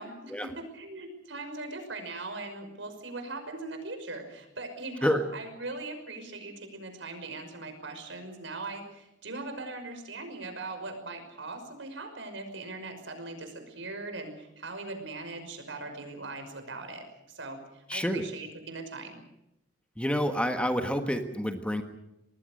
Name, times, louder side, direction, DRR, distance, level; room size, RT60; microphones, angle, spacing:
voice 1, 0.0-19.2, right 2 dB, 80° right, 6 dB, 5.8 m, -40 dB
voice 2, 17.9-18.2 20.0-21.8, equal, 5° left, 6 dB, 1.6 m, -28 dB
26.0 x 20.0 x 6.6 m, 0.86 s
head